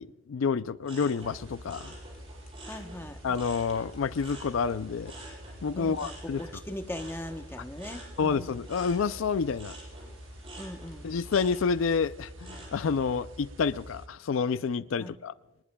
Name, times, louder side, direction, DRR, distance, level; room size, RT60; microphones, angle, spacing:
voice 1, 0.0-1.9 3.2-5.1 5.6-6.4 8.2-9.8 11.0-15.3, left 5 dB, 75° left, 0.4 m, -29 dB
sound 1, 0.8-3.9 4.2-13.0 13.4-13.9, right 2 dB, 30° right, 7.2 m, -48 dB
sound 2, 1.1-11.3, left 3 dB, 35° left, 5.2 m, -61 dB
sound 3, 1.2-14.1, equal, 70° right, 1.3 m, -47 dB
voice 2, 2.7-3.2 5.7-6.1 6.4-8.5 10.6-11.1 15.0-15.1, left 1 dB, 10° left, 0.9 m, -39 dB
26.0 x 19.5 x 2.3 m
head